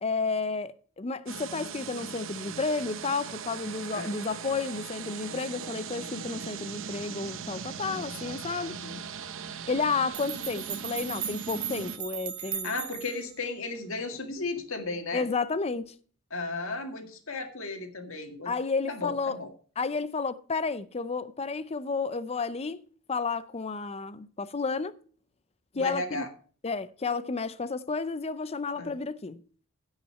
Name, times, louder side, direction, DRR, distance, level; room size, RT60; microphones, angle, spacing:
voice 1, 0.0-8.8 9.7-12.7 15.1-15.9 18.5-19.4 19.8-22.8 23.1-25.0 25.8-26.3 26.6-29.4, left 4 dB, 30° left, 0.5 m, -31 dB
sound 1, 1.3-12.0, right 6 dB, 60° right, 0.8 m, -39 dB
voice 2, 8.7-9.0 12.4-15.3 16.3-18.5 18.9-19.5 25.7-26.3 28.7-28.9, left 3 dB, 65° left, 1.9 m, -35 dB
sound 2, 9.8-9.9 10.1-13.3, right 9 dB, 85° right, 1.1 m, -37 dB
15.5 x 5.7 x 4.2 m
head